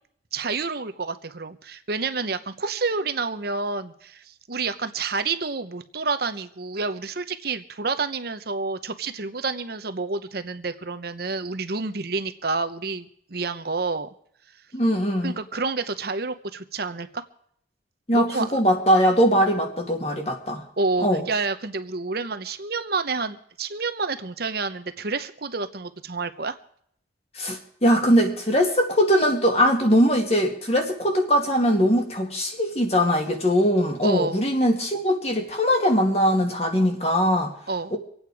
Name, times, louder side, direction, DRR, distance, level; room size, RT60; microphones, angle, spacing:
voice 1, 0.3-14.1 15.2-17.2 18.1-18.5 20.8-26.6 34.0-34.4 37.7-37.9, right 4 dB, 55° right, 9 dB, 0.9 m, -29 dB
voice 2, 14.7-15.4 18.1-20.6 21.0-21.2 27.4-37.5, equal, 35° left, 3 dB, 2.3 m, -21 dB
25.5 x 8.8 x 4.8 m, 0.66 s
head